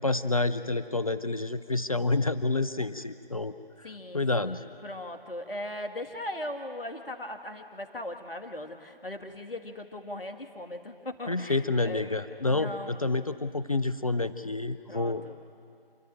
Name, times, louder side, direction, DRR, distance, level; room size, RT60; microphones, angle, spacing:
voice 1, 0.0-4.6 11.3-15.2, left 2 dB, 40° left, 13 dB, 0.5 m, -29 dB
voice 2, 3.8-13.0 14.9-15.4, left 1 dB, 70° left, 6 dB, 1.8 m, -39 dB
28.0 x 12.0 x 9.0 m, 2.4 s
figure-of-eight pair, 150°, 30 cm